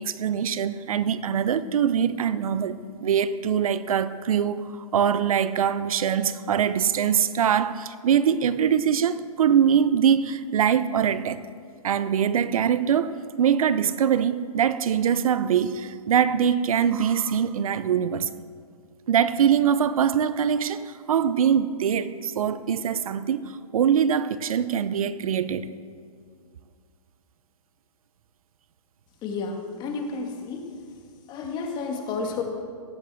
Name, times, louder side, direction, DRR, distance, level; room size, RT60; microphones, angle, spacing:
voice 1, 0.0-11.4 11.8-18.3 19.1-25.7, right 8 dB, 65° right, 14 dB, 0.7 m, -23 dB
voice 2, 29.2-30.7 31.3-32.4, left 4 dB, 20° left, 3 dB, 1.9 m, -31 dB
17.0 x 7.6 x 7.7 m, 2.1 s
hypercardioid pair, 145°, 19 cm